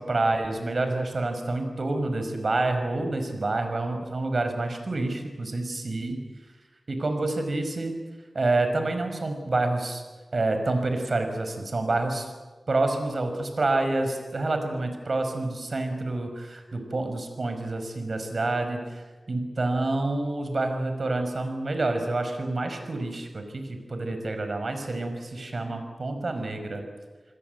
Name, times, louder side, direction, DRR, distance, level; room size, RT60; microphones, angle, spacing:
voice 1, 0.1-6.2 6.9-8.0 8.4-10.0 10.3-12.3 12.7-26.8, right 2 dB, 60° right, 7 dB, 5.3 m, -28 dB
29.5 x 21.0 x 8.1 m, 1.3 s
wide cardioid pair, 65°, 0 cm